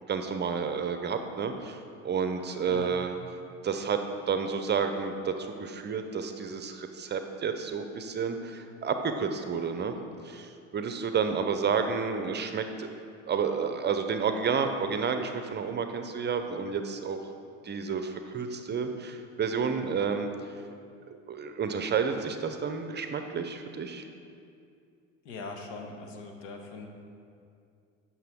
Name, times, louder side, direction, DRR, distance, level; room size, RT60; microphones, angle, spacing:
voice 1, 0.1-1.8 2.0-3.2 3.6-9.9 10.2-12.9 13.3-17.2 17.6-20.3 21.3-24.0, right 6 dB, 30° right, 7 dB, 0.6 m, -30 dB
voice 2, 25.2-26.9, left 3 dB, 80° left, 4 dB, 1.1 m, -41 dB
9.4 x 6.1 x 3.6 m, 2.4 s
hypercardioid pair, 85°, 38 cm